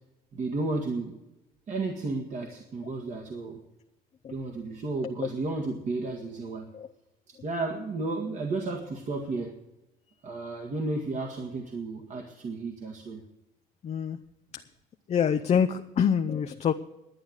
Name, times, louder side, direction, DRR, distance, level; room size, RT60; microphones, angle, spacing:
voice 1, 0.3-1.2 1.7-3.6 4.3-6.7 7.3-9.6 10.2-13.2, right 3 dB, 45° right, 2 dB, 1.8 m, -33 dB
voice 2, 13.8-14.2 15.1-16.7, left 7 dB, 40° left, 7 dB, 0.6 m, -25 dB
11.5 x 8.9 x 8.0 m, 0.95 s
cardioid pair, 110°, 17 cm